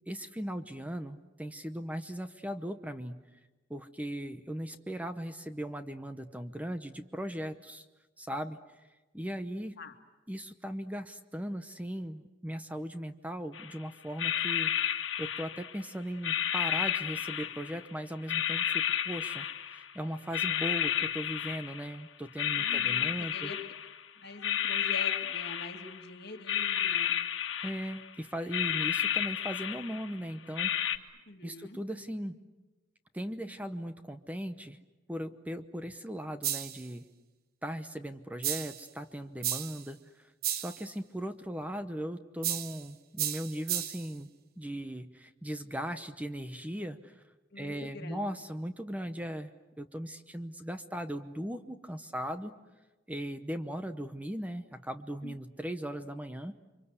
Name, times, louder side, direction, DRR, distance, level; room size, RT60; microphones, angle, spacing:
voice 1, 0.1-3.2 3.7-7.8 8.2-8.6 9.1-9.8 10.3-19.4 19.7-23.5 27.6-30.7 31.4-32.4 33.1-34.8 35.1-37.0 37.6-40.0 40.5-44.3 44.6-47.2 47.6-49.5 49.8-52.5 53.1-56.6, equal, 10° right, 9 dB, 0.9 m, -38 dB
sound 1, 13.5-13.8 14.2-15.8 16.2-17.9 18.3-20.0 20.3-22.0 22.3-24.0 24.4-26.1 26.5-28.1 28.4-30.2 30.6-31.0, left 9 dB, 90° left, 1.5 m, -32 dB
voice 2, 22.5-23.6 24.2-27.2 31.3-31.8 47.5-48.4 55.2-55.3, left 3 dB, 60° left, 4 dB, 2.2 m, -44 dB
sound 2, 36.4-36.9 38.4-38.9 39.4-39.9 40.4-40.8 42.4-42.8 43.2-44.1, right 10 dB, 55° right, 1.0 m, -33 dB
30.0 x 24.5 x 8.2 m, 1.1 s
head